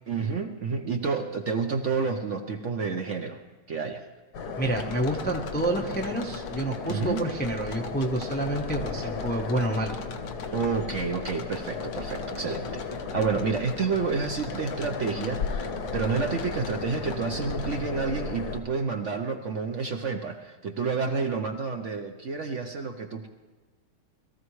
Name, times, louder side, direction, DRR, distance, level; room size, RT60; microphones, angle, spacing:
voice 1, 0.1-3.4 3.7-4.0 6.8-7.2 10.5-12.8 13.1-23.3, right 5 dB, 55° right, 4 dB, 0.9 m, -29 dB
sound 1, 4.3-18.6, left 4 dB, 65° left, 1.7 m, -35 dB
voice 2, 4.6-10.0, right 1 dB, 10° left, 2 dB, 0.6 m, -28 dB
sound 2, 4.7-17.8, left 6 dB, 80° left, 1.6 m, -45 dB
21.0 x 14.0 x 3.2 m, 1.3 s
omnidirectional pair, 1.9 m